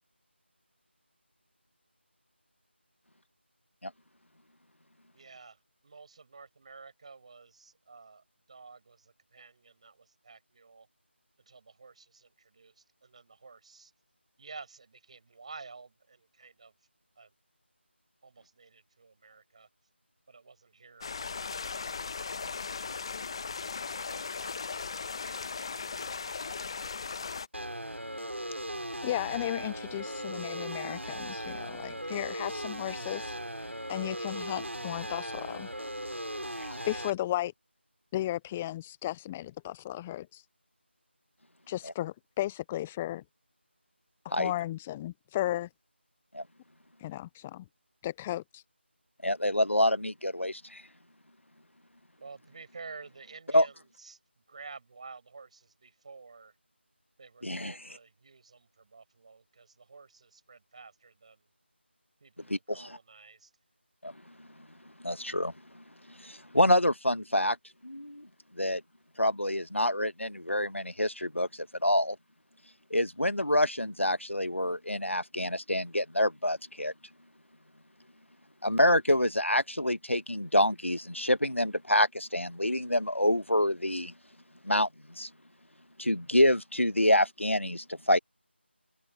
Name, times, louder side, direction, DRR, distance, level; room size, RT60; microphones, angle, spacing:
voice 1, 5.1-10.9 11.4-13.9 14.4-16.7 17.2-17.4 18.2-19.7 20.3-23.3 24.1-26.6 52.2-56.6 57.2-61.5 62.2-63.5, right 4 dB, 30° right, 6.8 m, -51 dB
sound 1, 21.0-27.5, left 5 dB, 25° left, 1.1 m, -37 dB
sound 2, 27.5-37.1, right 1 dB, 85° right, 6.6 m, -38 dB
voice 2, 29.0-35.7 36.8-37.5 38.1-40.5 41.7-43.2 44.4-45.7 47.0-47.6 48.0-48.6, left 14 dB, 5° left, 0.3 m, -35 dB
voice 3, 49.2-50.8 53.5-53.7 57.4-57.7 62.5-62.9 64.0-64.1 65.0-65.5 66.2-67.6 67.8-68.3 68.6-68.8 69.2-72.1 72.9-76.9 78.6-84.1 84.6-84.9 85.2-85.3 86.0-88.2, left 1 dB, 90° left, 1.3 m, -27 dB
figure-of-eight pair, 165°, 6 cm